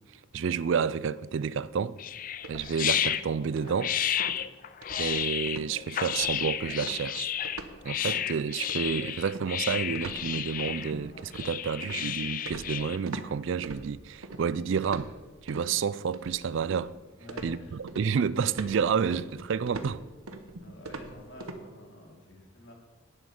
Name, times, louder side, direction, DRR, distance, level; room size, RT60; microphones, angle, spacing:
voice 1, 0.3-2.0 2.5-3.9 5.0-7.3 7.8-15.1 15.4-16.9 17.4-20.0, right 6 dB, 60° right, 0.3 m, -30 dB
sound 1, 2.0-13.0, left 10 dB, 40° left, 0.4 m, -32 dB
sound 2, 2.4-3.3 3.6-3.9 4.2-4.4 4.8-5.2 5.5-5.7 6.1-6.5 6.8-7.8 8.1-8.3 8.7-13.3 13.6-14.4 14.8-15.7 16.1-17.0 17.3-21.6, right 2 dB, 85° right, 1.0 m, -42 dB
voice 2, 17.2-17.8 20.6-22.7, left 1 dB, 55° left, 2.9 m, -48 dB
11.0 x 9.8 x 5.0 m
head